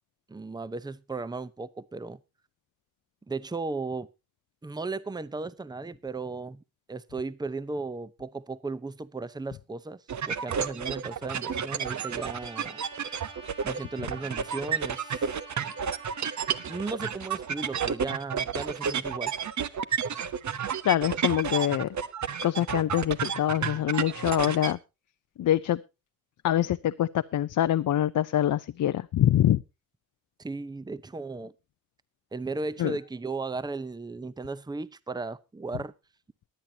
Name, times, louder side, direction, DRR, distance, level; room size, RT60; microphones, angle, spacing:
voice 1, 0.3-2.2 3.3-4.1 4.6-6.6 6.9-12.8 13.6-15.3 16.6-19.3 30.4-31.5 32.3-35.9, right 3 dB, 10° right, 0.7 m, -36 dB
sound 1, 10.1-24.7, right 7 dB, 55° right, 1.0 m, -31 dB
Trumpet, 11.8-16.9, right 3 dB, 70° right, 5.1 m, -47 dB
voice 2, 20.8-21.9 22.4-24.8 25.4-25.8 26.4-29.6 32.8-32.9, left 12 dB, 65° left, 0.6 m, -25 dB
22.5 x 8.8 x 2.8 m
cardioid pair, 85°, 34 cm